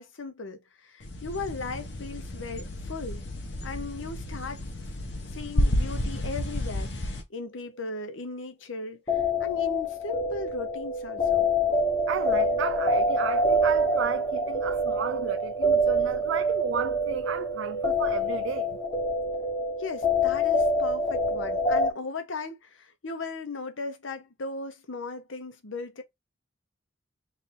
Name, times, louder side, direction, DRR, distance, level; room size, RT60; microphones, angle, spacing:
voice 1, 0.0-3.2 3.6-4.6 5.3-11.5 19.8-26.0, left 3 dB, 90° left, 0.8 m, -37 dB
sound 1, 1.0-7.2, left 1 dB, 65° left, 1.0 m, -31 dB
sound 2, 9.1-21.9, left 1 dB, 30° left, 0.7 m, -26 dB
voice 2, 12.1-18.7, right 6 dB, 85° right, 0.4 m, -33 dB
3.3 x 2.7 x 4.2 m
head